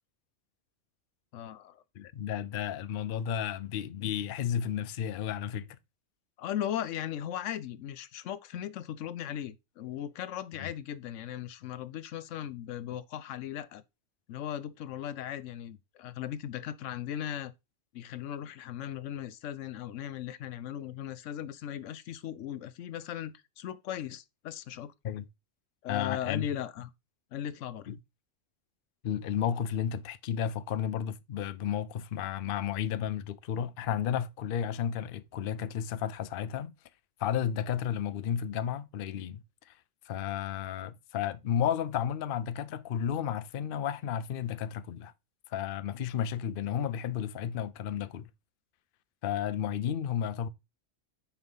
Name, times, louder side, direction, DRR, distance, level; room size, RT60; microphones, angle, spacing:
voice 1, 1.3-1.8 6.4-13.8 14.3-17.5 17.9-24.9 25.8-26.9 27.3-27.9, left 10 dB, 80° left, 0.9 m, -38 dB
voice 2, 1.9-5.8 10.6-10.7 25.0-25.3 25.9-26.5 27.9-28.0 29.0-36.7 37.2-39.8 40.0-45.1 45.5-48.3 49.2-50.5, left 9 dB, 55° left, 0.7 m, -32 dB
5.7 x 4.8 x 5.4 m
omnidirectional pair, 1.3 m